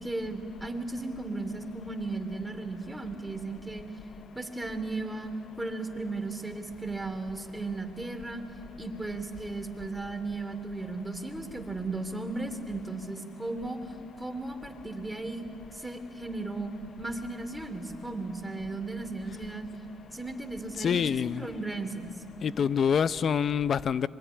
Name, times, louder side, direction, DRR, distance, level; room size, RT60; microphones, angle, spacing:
voice 1, 0.0-3.8 4.3-5.3 5.6-8.4 8.8-13.8 14.2-15.5 15.7-16.7 17.0-19.7 20.1-22.1, right 2 dB, 10° right, 7 dB, 2.8 m, -35 dB
voice 2, 20.8-21.5 22.4-24.1, left 7 dB, 50° left, 16 dB, 0.6 m, -26 dB
25.5 x 22.5 x 9.8 m, 2.4 s
cardioid pair, 90°, 0 cm